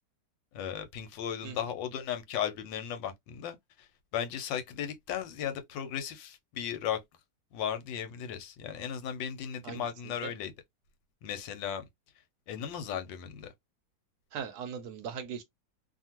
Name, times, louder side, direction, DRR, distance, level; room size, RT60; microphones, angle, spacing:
voice 1, 0.5-3.6 4.1-7.0 7.5-10.5 11.2-11.8 12.5-13.5, left 9 dB, 85° left, 1.3 m, -36 dB
voice 2, 9.6-10.3 14.3-15.4, right 7 dB, 70° right, 1.0 m, -40 dB
2.8 x 2.5 x 2.8 m
omnidirectional pair, 2.0 m